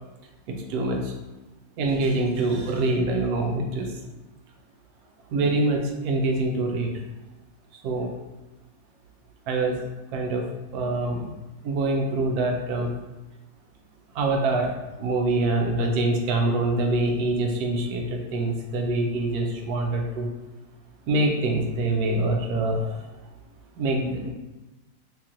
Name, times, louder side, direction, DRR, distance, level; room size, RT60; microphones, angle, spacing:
voice 1, 0.5-1.1 1.8-4.0 5.3-6.9 7.8-8.1 9.5-9.8 10.1-10.4 10.7-11.3 11.6-12.9 14.1-14.7 15.0-20.3 21.1-23.0 23.8-24.3, right 2 dB, 70° right, 2 dB, 1.1 m, -25 dB
3.0 x 2.9 x 3.7 m, 1.0 s
omnidirectional pair, 1.8 m